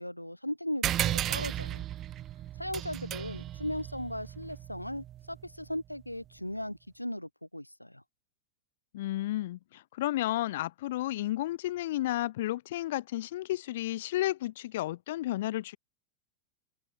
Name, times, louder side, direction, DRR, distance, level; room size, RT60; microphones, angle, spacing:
voice 1, 0.0-1.8 2.6-8.0, left 1 dB, 90° left, 2.1 m, -37 dB
sound 1, 0.8-5.8, right 12 dB, 30° right, 1.6 m, -35 dB
voice 2, 8.9-15.8, left 15 dB, 55° left, 2.1 m, -32 dB
open air
figure-of-eight pair, 90°, 0 cm